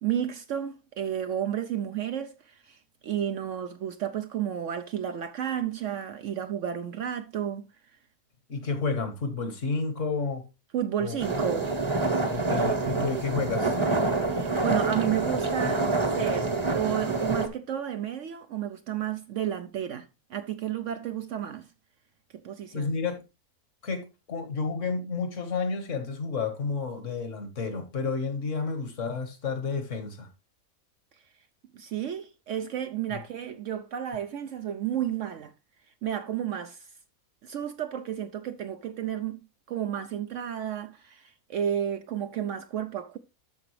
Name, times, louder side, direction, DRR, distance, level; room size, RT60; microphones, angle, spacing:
voice 1, 0.0-7.7 10.7-11.7 14.3-20.0 20.3-21.7 22.3-22.9 31.7-35.5 36.0-36.9 37.4-43.2, right 10 dB, 65° right, 0.9 m, -32 dB
voice 2, 8.5-10.5 11.0-11.2 12.3-13.8 22.7-23.2 23.8-30.3 33.1-33.2, left 4 dB, 60° left, 1.8 m, -31 dB
sound 1, 11.2-17.5, right 3 dB, 25° right, 0.9 m, -27 dB
13.0 x 4.9 x 3.2 m
omnidirectional pair, 1.5 m